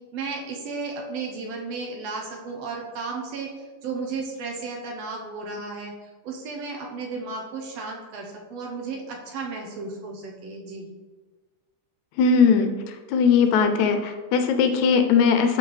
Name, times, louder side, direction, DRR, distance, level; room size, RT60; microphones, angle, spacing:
voice 1, 0.1-3.5 3.8-5.9 6.2-10.9, right 4 dB, 70° right, 0 dB, 1.9 m, -34 dB
voice 2, 12.2-12.7 13.1-15.6, left 5 dB, 80° left, 7 dB, 1.9 m, -19 dB
11.0 x 4.3 x 3.2 m, 1.3 s
omnidirectional pair, 3.3 m